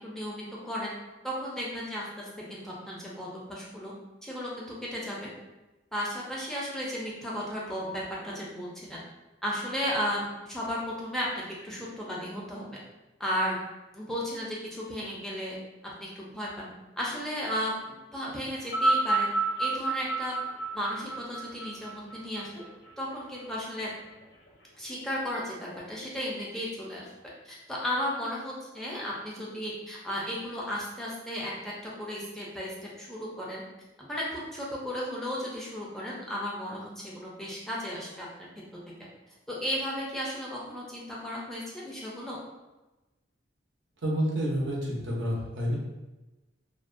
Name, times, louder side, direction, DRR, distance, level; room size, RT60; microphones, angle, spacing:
voice 1, 0.0-0.9 1.2-3.9 4.2-5.3 5.9-9.0 9.4-12.6 13.2-13.6 13.9-15.6 16.0-16.7 17.0-19.3 19.6-20.4 20.7-22.6 23.0-23.9 24.8-25.6 25.9-27.1 27.4-33.6 34.0-38.5 39.5-42.4, equal, ahead, -5 dB, 0.4 m, -34 dB
sound 1, 18.6-23.1 24.0-24.1, right 3 dB, 70° left, 0.5 m, -29 dB
voice 2, 44.0-45.8, equal, 70° right, -3 dB, 0.6 m, -29 dB
2.5 x 2.1 x 2.4 m, 1.1 s
head